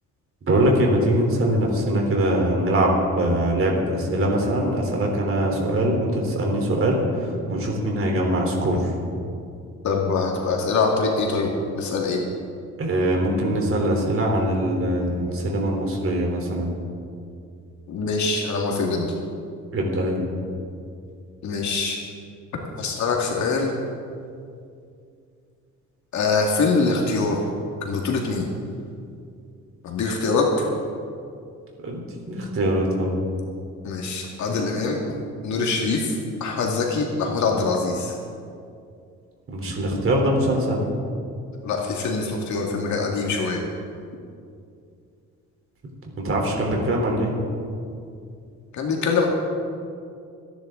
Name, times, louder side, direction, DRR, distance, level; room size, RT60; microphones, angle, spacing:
voice 1, 0.4-8.9 12.8-16.7 19.7-20.2 31.8-32.0 32.3-33.1 39.5-40.8 46.2-47.3, right 1 dB, 45° right, 0 dB, 3.7 m, -22 dB
voice 2, 9.8-12.2 17.9-19.1 21.4-22.0 22.8-23.8 26.1-27.4 27.8-28.5 29.8-30.7 33.8-35.0 35.4-38.2 41.6-43.6 48.7-49.3, left 4 dB, 70° left, 0 dB, 2.2 m, -24 dB
26.5 x 10.5 x 3.9 m, 2.4 s
cardioid pair, 90°, 30 cm